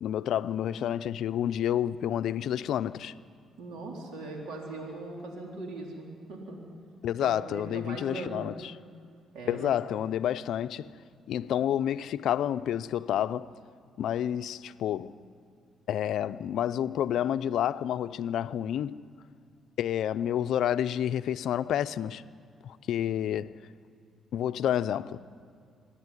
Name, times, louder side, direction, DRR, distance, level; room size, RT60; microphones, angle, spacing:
voice 1, 0.0-3.1 7.0-8.7 9.5-10.9 11.3-13.5 14.0-15.2 15.9-19.0 19.8-22.2 22.6-23.5 24.3-25.2, left 10 dB, 75° left, 0.5 m, -29 dB
voice 2, 3.6-6.6 7.2-8.5 9.3-10.0, right 2 dB, 85° right, 3.9 m, -40 dB
26.5 x 11.5 x 9.8 m
cardioid pair, 90°, 0 cm